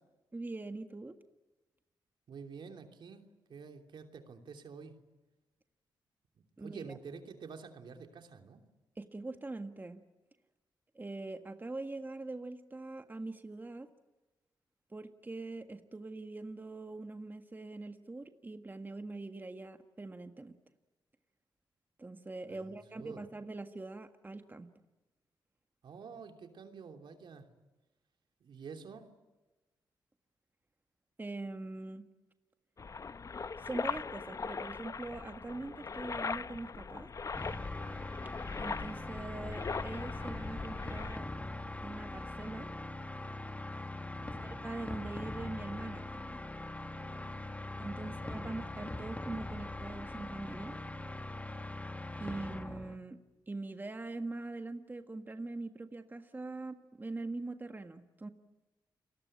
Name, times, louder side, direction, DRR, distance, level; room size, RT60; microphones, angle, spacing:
voice 1, 0.3-1.2 6.6-7.0 9.0-10.0 10.9-13.9 14.9-20.6 22.0-24.7 31.2-32.1 33.6-37.1 38.6-41.3 41.8-42.7 44.4-46.4 47.8-50.8 52.2-53.2 53.5-58.3, right 2 dB, 25° right, 7 dB, 1.6 m, -43 dB
voice 2, 2.3-3.2 3.5-5.0 6.3-8.6 22.5-23.2 25.8-27.5 28.4-29.1 44.1-44.5 48.0-48.5, right 5 dB, 70° right, 4 dB, 3.1 m, -49 dB
sound 1, 32.8-41.2, left 5 dB, 40° left, 0.8 m, -40 dB
sound 2, 37.3-53.0, left 2 dB, 15° left, 1.9 m, -42 dB
30.0 x 20.5 x 8.8 m, 1.1 s
cardioid pair, 70°, 8 cm